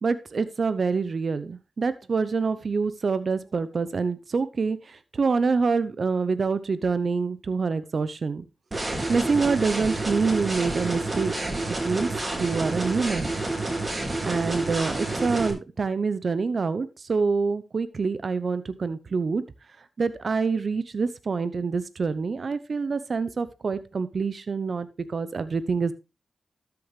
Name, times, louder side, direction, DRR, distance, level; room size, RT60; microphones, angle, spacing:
voice 1, 0.0-8.5 9.1-11.3 11.8-12.1 12.4-13.3 14.2-19.4 20.0-25.9, right 4 dB, 60° right, 13 dB, 0.7 m, -26 dB
sound 1, 8.7-15.5, right 2 dB, 35° right, 4.2 m, -29 dB
13.0 x 7.0 x 3.3 m, 0.28 s
cardioid pair, 50°, 0 cm